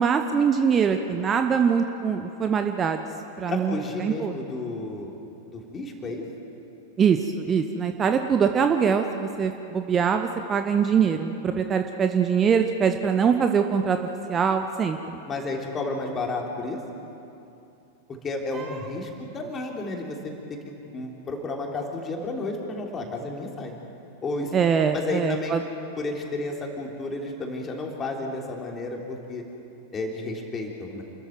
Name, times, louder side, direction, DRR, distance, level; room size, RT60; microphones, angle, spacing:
voice 1, 0.0-3.0 3.4-4.3 7.0-14.0 14.3-15.2 18.6-18.7 24.5-25.6, right 6 dB, 25° right, 7 dB, 1.0 m, -23 dB
voice 2, 3.5-5.1 5.5-6.2 15.3-16.8 18.2-23.7 24.2-24.5 24.9-25.6 26.0-29.4 29.9-31.0, left 2 dB, 20° left, 0 dB, 3.4 m, -32 dB
28.5 x 14.0 x 9.2 m, 2.8 s
figure-of-eight pair, 90°, 0 cm